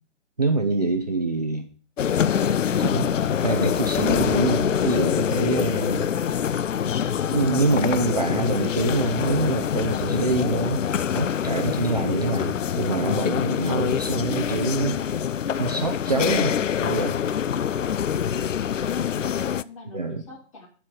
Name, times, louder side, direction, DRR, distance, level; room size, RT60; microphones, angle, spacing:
voice 1, 0.4-1.7 2.8-3.2 3.4-6.1 7.3-10.8 11.1-15.0 15.5-17.1 19.9-20.2, right 3 dB, 35° right, 5 dB, 0.6 m, -25 dB
sound 1, 2.0-19.6, left 8 dB, 80° left, 0.5 m, -25 dB
voice 2, 19.2-20.7, left 1 dB, 25° left, 0 dB, 2.0 m, -46 dB
9.9 x 4.6 x 6.4 m, 0.41 s
figure-of-eight pair, 160°, 37 cm